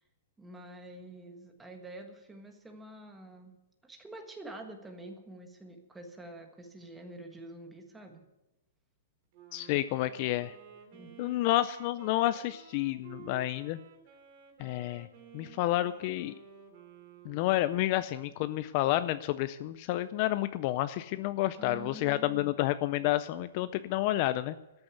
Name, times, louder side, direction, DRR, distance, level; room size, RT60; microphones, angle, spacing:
voice 1, 0.4-3.6 3.8-8.2 10.9-11.3 21.6-22.5, right 2 dB, 5° right, 4 dB, 1.4 m, -47 dB
Wind instrument woodwind instrument, 9.3-18.0, right 7 dB, 40° right, 2.6 m, -54 dB
voice 2, 9.5-10.5 11.2-13.8 14.6-15.1 15.3-16.3 17.2-24.5, left 15 dB, 40° left, 13 dB, 0.4 m, -30 dB
13.5 x 7.0 x 8.2 m, 0.97 s
hypercardioid pair, 155°, 0 cm